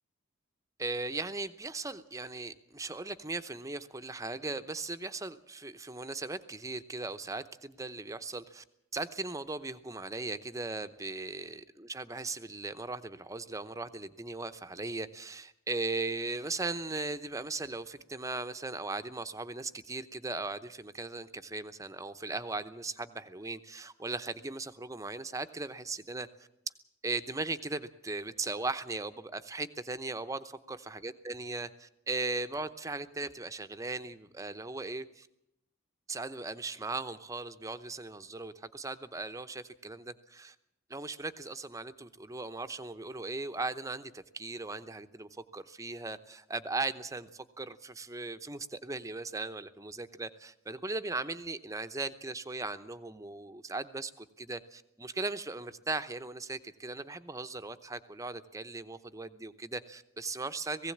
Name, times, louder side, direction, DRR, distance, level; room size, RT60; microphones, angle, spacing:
voice 1, 0.8-8.6 8.9-26.3 27.0-35.3 36.1-40.5 40.9-60.9, right 3 dB, 15° right, 10 dB, 0.8 m, -38 dB
18.5 x 16.5 x 8.6 m, 0.80 s
head